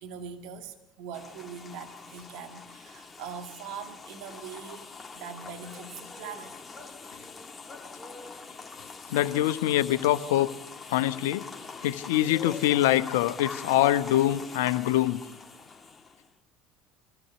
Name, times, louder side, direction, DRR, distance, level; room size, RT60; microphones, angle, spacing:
voice 1, 0.0-6.6, right 6 dB, 65° right, 5 dB, 1.8 m, -42 dB
sound 1, 1.1-16.3, left 4 dB, 20° left, 1.8 m, -44 dB
voice 2, 9.1-10.5 10.9-11.4 11.8-15.2, left 13 dB, 75° left, 11 dB, 0.9 m, -24 dB
22.5 x 15.0 x 8.2 m, 0.96 s
hypercardioid pair, 75°, 0 cm